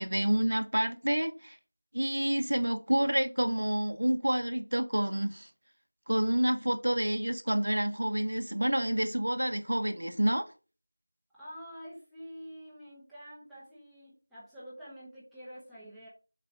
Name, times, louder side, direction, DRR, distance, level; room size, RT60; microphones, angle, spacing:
voice 1, 0.0-1.6 1.9-5.5 6.1-10.4, right 1 dB, 75° right, 1.1 m, -28 dB
voice 2, 11.3-16.1, equal, ahead, 1.1 m, -47 dB
5.6 x 4.6 x 5.2 m
figure-of-eight pair, 175°, 0 cm